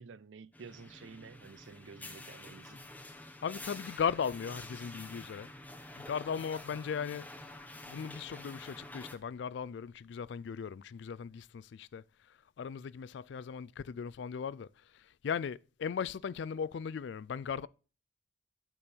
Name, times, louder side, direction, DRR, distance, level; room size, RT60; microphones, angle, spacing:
voice 1, 0.0-2.8, right 5 dB, 70° right, 0.5 m, -51 dB
sound 1, 0.5-9.2, left 2 dB, 10° left, 0.7 m, -48 dB
voice 2, 3.4-5.5 6.0-7.3 7.9-17.7, left 7 dB, 60° left, 0.3 m, -37 dB
8.6 x 4.4 x 6.8 m
head